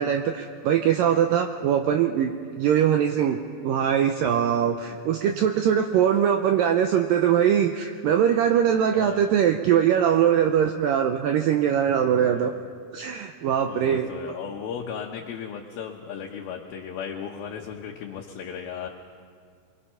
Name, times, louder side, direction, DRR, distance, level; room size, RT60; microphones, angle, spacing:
voice 1, 0.0-2.3 2.6-12.5 12.9-14.1, right 9 dB, 85° right, 5 dB, 2.0 m, -22 dB
voice 2, 8.9-9.4 12.3-12.6 13.7-18.9, left 7 dB, 70° left, 1 dB, 2.7 m, -36 dB
25.0 x 22.5 x 5.7 m, 2.1 s
omnidirectional pair, 4.8 m